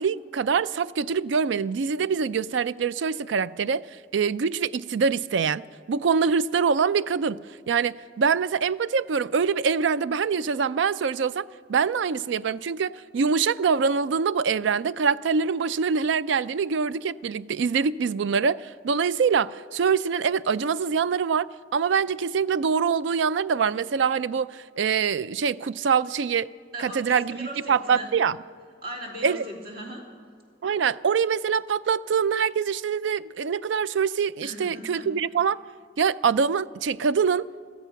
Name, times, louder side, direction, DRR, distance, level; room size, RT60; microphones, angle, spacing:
voice 1, 0.0-3.9 4.1-26.5 26.8-28.4 29.2-29.4 30.6-35.6 36.0-37.6, right 6 dB, 75° right, 0.4 m, -24 dB
voice 2, 26.7-28.1 28.8-30.0 34.4-35.1, right 1 dB, 55° right, 3.2 m, -38 dB
17.5 x 13.0 x 5.8 m
head